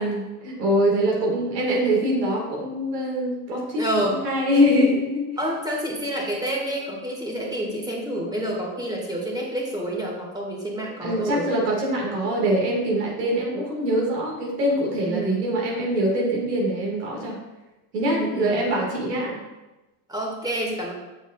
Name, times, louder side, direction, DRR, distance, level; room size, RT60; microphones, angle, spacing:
voice 1, 0.0-5.3 11.0-17.4 17.9-19.4, equal, 90° right, -3 dB, 2.0 m, -23 dB
voice 2, 3.8-4.2 5.4-11.5 15.1-15.4 18.1-18.6 20.1-20.9, right 1 dB, 10° right, -2 dB, 1.9 m, -28 dB
7.1 x 5.8 x 2.4 m, 1.1 s
hypercardioid pair, 90°, 46 cm